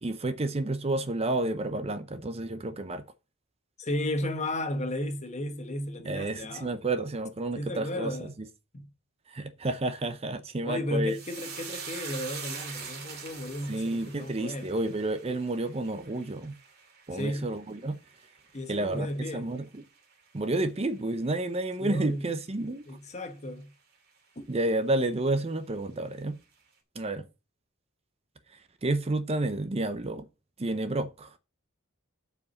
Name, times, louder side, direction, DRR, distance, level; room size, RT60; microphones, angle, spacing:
voice 1, 0.0-3.0 6.0-8.5 9.3-11.2 13.7-16.6 17.1-18.0 18.7-19.8 20.3-22.8 24.5-26.4 27.0-27.3 28.8-30.3 30.6-31.3, right 2 dB, 30° right, 0.6 m, -30 dB
voice 2, 3.8-6.8 7.6-8.4 8.7-8.9 10.6-15.0 17.1-17.5 18.5-19.5 21.8-22.3 22.9-23.7 24.4-24.5, left 1 dB, 30° left, 1.1 m, -34 dB
sound 1, 11.1-19.7 20.0-20.6 20.9-21.2, right 6 dB, 50° right, 2.2 m, -44 dB
7.9 x 4.8 x 6.9 m
head